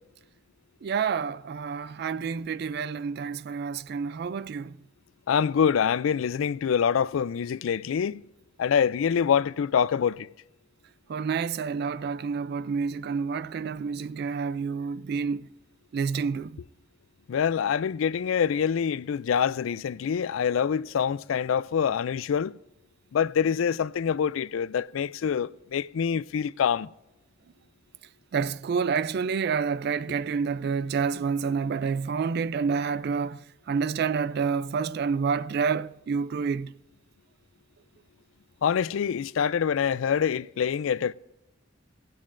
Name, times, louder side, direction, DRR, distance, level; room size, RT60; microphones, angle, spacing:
voice 1, 0.8-4.7 11.1-15.5 15.9-16.6 28.3-36.7, right 5 dB, 50° right, 0.3 m, -28 dB
voice 2, 5.3-8.2 8.6-10.3 17.3-22.6 23.1-26.9 38.6-41.1, left 7 dB, 80° left, 0.4 m, -25 dB
17.0 x 16.0 x 2.5 m
head